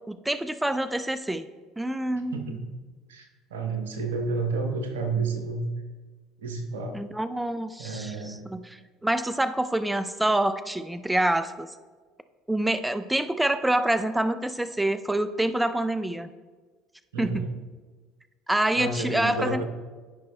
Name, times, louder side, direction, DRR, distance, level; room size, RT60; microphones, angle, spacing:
voice 1, 0.1-1.5 1.8-2.6 6.9-11.7 12.5-16.3 17.2-17.4 18.5-19.6, right 1 dB, 10° right, 12 dB, 0.4 m, -26 dB
voice 2, 2.3-2.7 3.1-5.6 6.4-7.0 7.8-8.5 17.1-17.5 18.8-19.6, right 3 dB, 80° right, 5 dB, 0.9 m, -30 dB
13.5 x 5.3 x 2.3 m, 1.4 s
hypercardioid pair, 65°, 0 cm